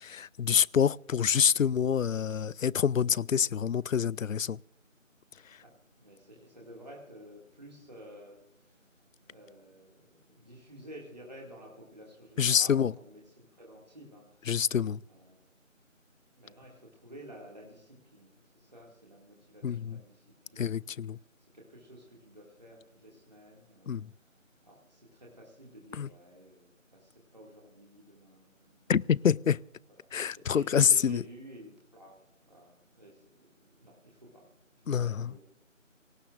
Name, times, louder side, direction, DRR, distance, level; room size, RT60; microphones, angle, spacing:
voice 1, 0.0-4.6 12.4-12.9 14.5-15.0 19.6-20.0 20.6-21.2 23.9-24.1 25.9-26.1 28.9-29.6 30.1-31.2 34.9-35.3, left 7 dB, 75° left, 0.5 m, -26 dB
voice 2, 6.0-15.4 16.4-20.8 21.1-32.1 32.4-34.4 34.7-35.4, equal, 30° right, 2.3 m, -52 dB
25.5 x 18.0 x 2.6 m
figure-of-eight pair, 175°, 40 cm